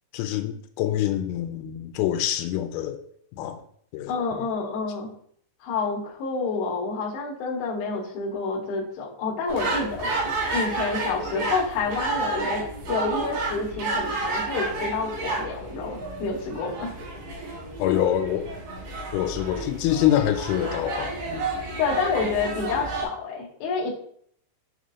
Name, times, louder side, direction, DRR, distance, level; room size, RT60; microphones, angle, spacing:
voice 1, 0.1-3.0 3.3-3.6 3.9-4.4 17.8-18.5 19.1-21.5, left 11 dB, 90° left, 8 dB, 3.3 m, -26 dB
voice 2, 4.1-5.1 5.6-16.9 21.8-23.9, left 4 dB, 60° left, -3 dB, 2.8 m, -29 dB
sound 1, 9.5-23.0, right 3 dB, 55° right, 4.2 m, -31 dB
7.2 x 6.1 x 2.8 m, 0.64 s
omnidirectional pair, 5.9 m